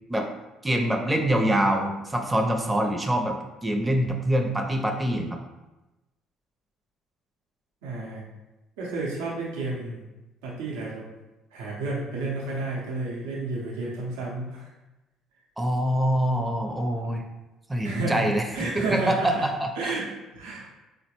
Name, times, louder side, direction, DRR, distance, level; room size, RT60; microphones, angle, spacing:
voice 1, 0.6-5.4 15.6-17.2 17.7-18.4 18.8-19.7, right 1 dB, 15° right, 3 dB, 0.5 m, -25 dB
voice 2, 7.8-8.2 8.8-10.0 10.4-11.1 11.5-14.6 17.8-19.5 19.8-20.7, right 3 dB, 90° right, -4 dB, 0.7 m, -31 dB
3.8 x 2.1 x 2.9 m, 1.0 s
supercardioid pair, 75°, 0 cm